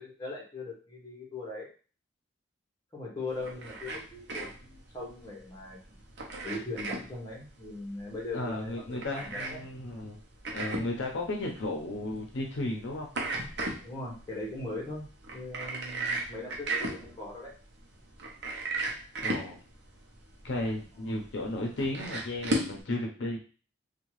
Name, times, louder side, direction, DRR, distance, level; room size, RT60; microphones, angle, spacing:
voice 1, 0.0-1.7 2.9-6.0 6.4-9.7 13.8-17.5 21.0-21.2, left 2 dB, 20° left, -3 dB, 0.9 m, -40 dB
sound 1, 3.3-22.8, right 2 dB, 60° right, 0.7 m, -37 dB
voice 2, 8.3-10.2 10.5-13.1 19.2-19.6 20.4-23.4, left 2 dB, 65° left, 0 dB, 0.6 m, -34 dB
2.7 x 2.2 x 3.0 m, 0.38 s
head